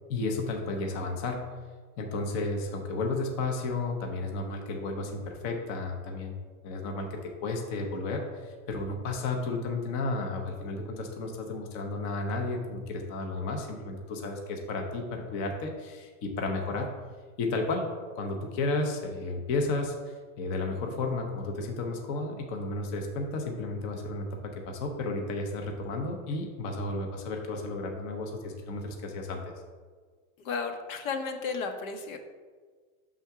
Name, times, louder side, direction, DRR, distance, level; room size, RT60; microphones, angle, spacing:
voice 1, 0.1-1.5 2.0-6.4 6.6-16.9 17.4-17.9 18.2-29.5, left 3 dB, 30° left, 2 dB, 0.5 m, -33 dB
voice 2, 30.4-32.2, left 4 dB, 75° left, 5 dB, 0.9 m, -33 dB
5.7 x 3.6 x 5.6 m, 1.5 s
supercardioid pair, 165°, 41 cm